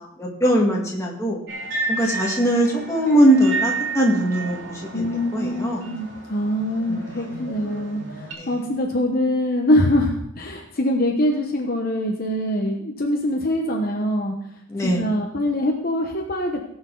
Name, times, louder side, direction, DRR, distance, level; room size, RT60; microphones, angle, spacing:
voice 1, 0.0-1.4 1.9-4.8 5.3-5.9 6.9-7.2 8.4-8.5 14.7-15.0, right 1 dB, 15° left, -2 dB, 1.8 m, -21 dB
sound 1, 1.5-8.3, right 3 dB, 55° right, 2.9 m, -32 dB
voice 2, 4.9-14.3 14.8-16.7, left 1 dB, 40° left, 1 dB, 1.0 m, -23 dB
18.5 x 6.2 x 3.9 m, 0.76 s
head